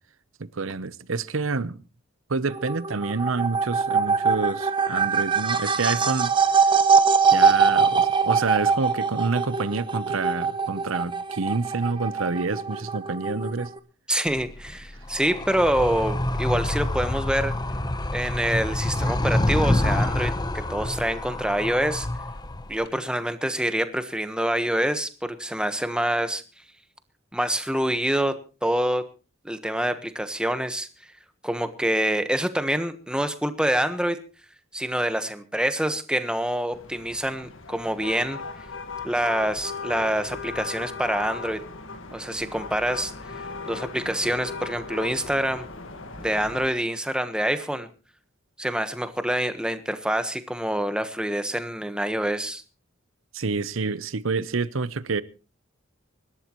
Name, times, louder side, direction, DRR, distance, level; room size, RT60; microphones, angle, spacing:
voice 1, 0.4-1.8 2.3-6.3 7.3-13.7 53.3-55.2, right 4 dB, 75° right, 0.8 m, -28 dB
sound 1, 2.5-13.8, right 5 dB, 25° right, 1.0 m, -23 dB
voice 2, 14.1-17.5 18.1-22.1 22.7-26.4 27.3-28.3 28.6-29.1 29.4-30.9 31.4-34.2 34.7-38.4 39.0-41.6 42.1-43.1 43.6-45.7 46.2-47.9 48.6-52.6, right 1 dB, 5° right, 1.3 m, -26 dB
Animal, 14.3-22.9, left 1 dB, 20° left, 0.9 m, -27 dB
sound 2, 36.7-46.7, left 4 dB, 70° left, 1.7 m, -37 dB
25.0 x 12.5 x 3.1 m
head